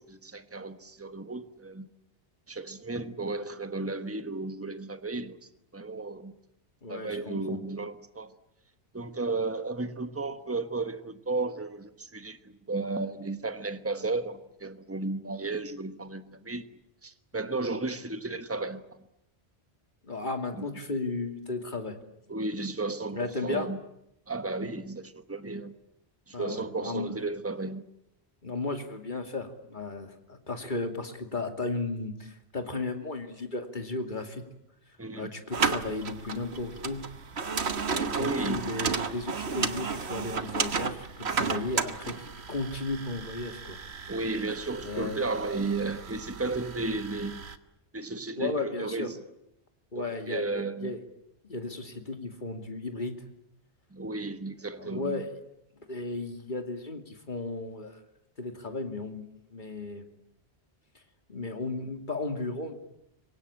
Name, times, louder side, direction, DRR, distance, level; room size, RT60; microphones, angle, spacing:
voice 1, 0.0-1.9 2.5-6.3 6.9-8.3 8.9-16.7 17.0-18.8 20.5-20.7 22.3-23.8 24.3-25.7 26.3-27.8 35.0-35.3 38.1-38.8 44.1-47.5 47.9-49.2 49.9-51.0 53.9-55.3, right 3 dB, 15° right, 1.3 m, -34 dB
voice 2, 6.8-7.6 20.0-22.0 23.1-23.7 26.3-27.1 28.4-34.4 35.1-37.0 37.9-43.8 44.8-45.2 48.4-49.1 49.9-51.0 51.4-53.2 54.8-55.3 55.9-58.0 58.4-59.2 59.5-60.0 61.3-62.7, left 3 dB, 45° left, 2.8 m, -34 dB
sound 1, 35.5-47.6, right 5 dB, 75° right, 1.6 m, -33 dB
27.0 x 23.5 x 8.8 m
omnidirectional pair, 1.1 m